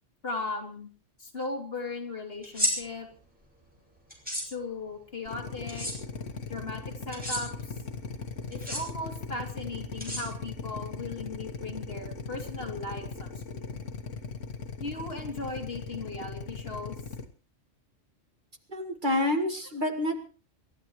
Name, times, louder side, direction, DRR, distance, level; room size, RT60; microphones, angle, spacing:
voice 1, 0.2-0.9 1.2-3.1 4.5-5.9 6.5-7.7 8.5-13.9 14.8-16.9, left 3 dB, 50° left, 2 dB, 3.1 m, -37 dB
sound 1, 2.4-2.7 4.1-4.4 5.7-5.9 7.1-7.4 8.5-8.8 10.0-10.6, left 1 dB, 5° right, 5.6 m, -30 dB
Drill, 5.3-17.2, left 5 dB, 75° left, 1.7 m, -38 dB
voice 2, 18.7-20.2, left 1 dB, 40° right, 4 dB, 2.1 m, -28 dB
28.0 x 13.0 x 3.1 m, 0.35 s
omnidirectional pair, 1.3 m